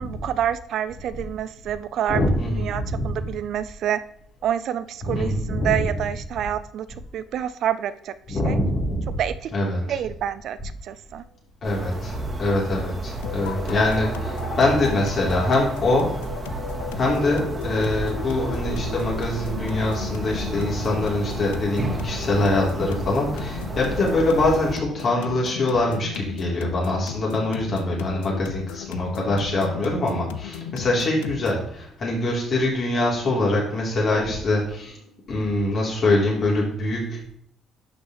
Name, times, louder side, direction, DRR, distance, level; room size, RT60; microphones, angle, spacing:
voice 1, 0.0-2.2 2.6-4.0 4.4-6.9 7.1-8.1 8.4-8.6 9.2-9.5 9.9-10.6 10.8-11.2, right 10 dB, 65° right, 14 dB, 0.4 m, -27 dB
voice 2, 2.1-3.2 5.1-6.0 8.3-9.2 9.5-10.0 11.6-16.2 16.9-37.3, left 2 dB, 55° left, -3 dB, 3.7 m, -24 dB
sound 1, 11.6-24.8, right 2 dB, 35° right, 2.5 m, -31 dB
sound 2, 13.2-31.7, left 9 dB, 85° left, 0.4 m, -36 dB
11.5 x 6.1 x 3.3 m, 0.65 s
hypercardioid pair, 55°, 0 cm